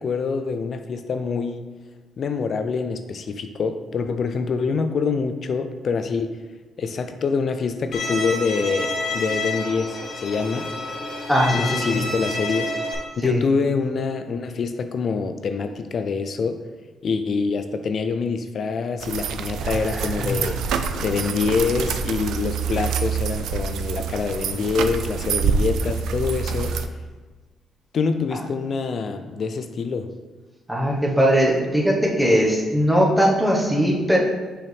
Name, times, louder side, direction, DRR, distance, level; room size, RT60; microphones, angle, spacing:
voice 1, 0.0-1.6 2.2-6.4 6.8-10.7 11.5-12.7 13.2-16.6 17.0-20.6 21.0-26.8 27.9-30.1, left 5 dB, 55° left, 9 dB, 0.4 m, -25 dB
Bowed string instrument, 7.9-12.9, left 2 dB, 70° left, 1.2 m, -29 dB
voice 2, 11.3-12.0 13.2-13.4 19.6-20.3 30.7-34.2, equal, 5° right, -2 dB, 1.2 m, -20 dB
sound 1, 19.0-26.9, right 6 dB, 80° right, 0.3 m, -26 dB
6.0 x 4.6 x 3.4 m, 1.3 s
cardioid pair, 90°, 0 cm